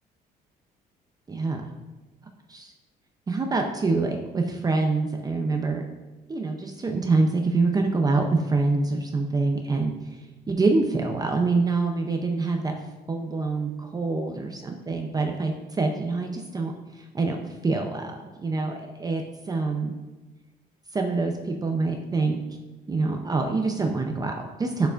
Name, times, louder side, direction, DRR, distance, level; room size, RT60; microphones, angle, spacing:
voice 1, 1.3-1.6 2.5-2.7 3.3-5.8 6.3-12.7 13.1-19.9 20.9-22.4 22.9-24.9, right 3 dB, 20° right, 3 dB, 0.6 m, -26 dB
7.9 x 6.8 x 2.5 m, 1.2 s
cardioid pair, 110°, 17 cm